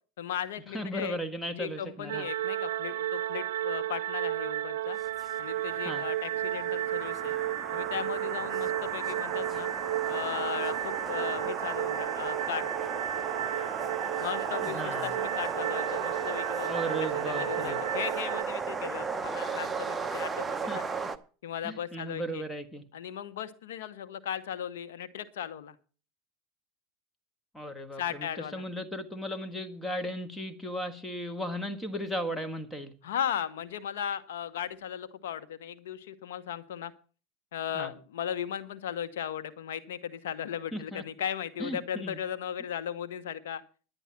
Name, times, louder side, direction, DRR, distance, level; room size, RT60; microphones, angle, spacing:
voice 1, 0.2-1.2 1.5-5.0 5.4-7.3 7.7-9.7 10.1-12.7 14.2-16.7 17.0-20.8 21.4-22.4 22.9-25.7 28.0-28.6 33.0-36.9 37.5-43.6, left 9 dB, 85° left, 12 dB, 1.1 m, -36 dB
voice 2, 0.7-2.3 5.8-6.1 14.6-15.1 16.6-17.8 20.7-21.1 21.6-22.8 27.5-32.9 37.7-37.9 40.7-41.0 41.6-42.2, equal, 10° left, 8 dB, 1.6 m, -36 dB
sound 1, 2.1-18.4, right 13 dB, 80° right, 0.6 m, -33 dB
sound 2, 5.0-21.2, right 4 dB, 15° right, 0.8 m, -36 dB
11.0 x 9.9 x 5.9 m, 0.38 s
supercardioid pair, 120°, 0 cm